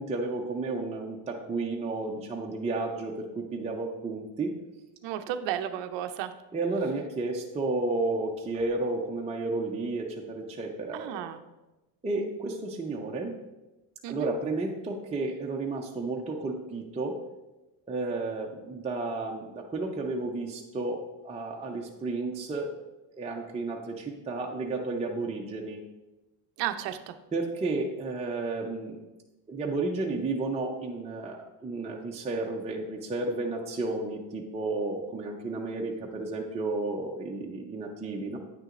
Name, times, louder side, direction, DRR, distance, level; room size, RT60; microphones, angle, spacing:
voice 1, 0.0-4.5 6.5-11.2 12.0-13.3 14.1-17.2 17.9-22.7 23.1-25.8 27.3-29.0 29.5-38.4, right 3 dB, 15° right, -1 dB, 0.6 m, -32 dB
voice 2, 5.0-6.3 10.9-11.4 14.0-14.3 26.6-27.2, right 11 dB, 60° right, 8 dB, 0.6 m, -33 dB
9.1 x 6.2 x 2.5 m, 1.0 s
supercardioid pair, 105°, 50 cm